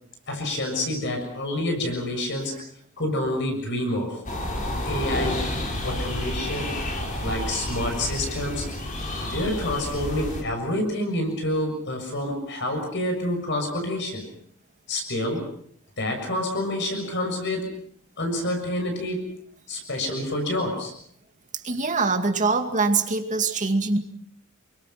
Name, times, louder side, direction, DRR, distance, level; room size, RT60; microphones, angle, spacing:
voice 1, 0.3-2.6 3.0-4.2 4.9-5.4 5.8-6.7 7.2-8.7 9.2-14.2 14.9-15.5 16.0-17.7 18.2-19.3 19.7-20.9, left 1 dB, 60° left, 4 dB, 7.0 m, -28 dB
sound 1, 4.3-10.4, left 1 dB, 40° left, 4.8 m, -30 dB
voice 2, 21.6-24.0, right 3 dB, 35° right, 5 dB, 2.4 m, -23 dB
29.5 x 23.5 x 5.9 m, 0.64 s
head